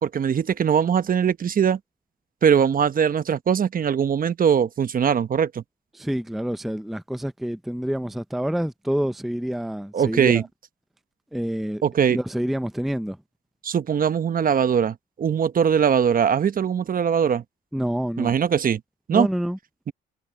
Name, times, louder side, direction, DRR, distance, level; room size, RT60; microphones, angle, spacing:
voice 1, 0.0-1.8 2.4-5.6 9.9-10.4 11.8-12.2 13.6-17.4 18.2-18.8 19.1-19.3, right 7 dB, 45° right, 1.0 m, -21 dB
voice 2, 5.9-10.5 11.3-13.2 17.7-18.4 19.1-19.6, equal, ahead, 0.6 m, -27 dB
cardioid pair, 90°, 20 cm